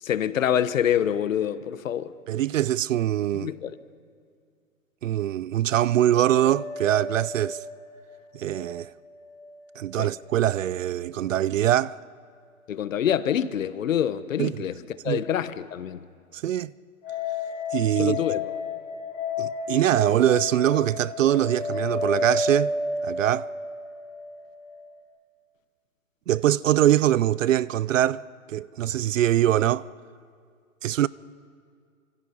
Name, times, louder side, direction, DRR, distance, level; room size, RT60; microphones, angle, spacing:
voice 1, 0.0-2.1 3.4-3.7 10.0-10.1 12.7-14.7 15.0-16.0 18.0-18.5, left 9 dB, 65° left, 1.3 m, -26 dB
voice 2, 2.3-3.5 5.0-7.6 8.3-8.9 9.8-12.0 14.4-14.6 15.1-15.2 16.3-16.7 17.7-18.2 19.4-22.7 23.0-23.5 26.3-28.2 28.5-29.9 30.8-31.1, right 12 dB, 65° right, 0.5 m, -23 dB
sound 1, 6.3-9.5 9.7-9.8 17.0-25.0, left 3 dB, 15° left, 2.2 m, -32 dB
25.5 x 25.5 x 5.3 m
hypercardioid pair, 160°, 43 cm